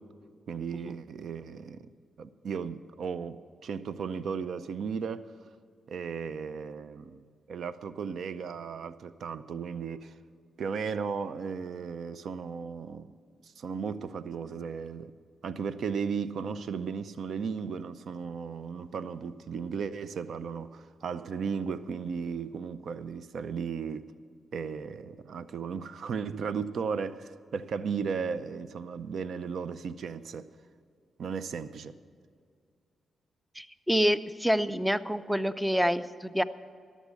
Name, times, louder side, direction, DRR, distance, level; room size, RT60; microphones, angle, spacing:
voice 1, 0.5-1.9 2.2-5.3 5.9-7.2 7.5-10.2 10.6-13.1 13.4-15.1 15.4-24.1 24.5-30.5 31.2-32.0, right 6 dB, 70° right, 0.5 m, -35 dB
voice 2, 33.6-36.4, equal, 5° right, 0.5 m, -27 dB
12.5 x 7.2 x 8.3 m
cardioid pair, 60°, 0 cm